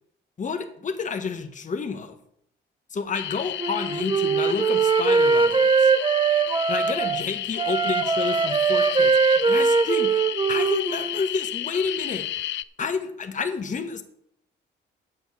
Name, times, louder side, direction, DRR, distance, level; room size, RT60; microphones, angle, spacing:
voice 1, 0.4-2.2 2.9-5.9 6.7-12.3 12.8-14.0, left 5 dB, 40° left, 7 dB, 1.2 m, -30 dB
sound 1, 3.1-12.6, left 13 dB, 65° left, 0.5 m, -32 dB
Wind instrument woodwind instrument, 3.6-7.2 7.6-11.2, right 5 dB, 25° right, 0.9 m, -21 dB
8.0 x 7.2 x 7.0 m, 0.71 s
cardioid pair, 90°, 20 cm